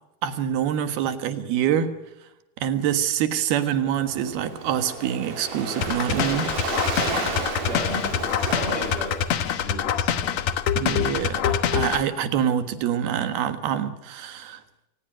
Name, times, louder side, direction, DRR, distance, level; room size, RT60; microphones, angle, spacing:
voice 1, 0.2-1.9 2.6-6.5 10.8-14.6, right 9 dB, 80° right, 9 dB, 3.5 m, -25 dB
Waves surf, 3.8-9.5, right 4 dB, 55° right, 5.4 m, -32 dB
sound 1, 5.8-12.0, left 9 dB, 65° left, 1.9 m, -25 dB
voice 2, 7.6-10.3, equal, 15° right, -1 dB, 7.8 m, -35 dB
28.0 x 19.5 x 6.3 m, 0.93 s
omnidirectional pair, 4.4 m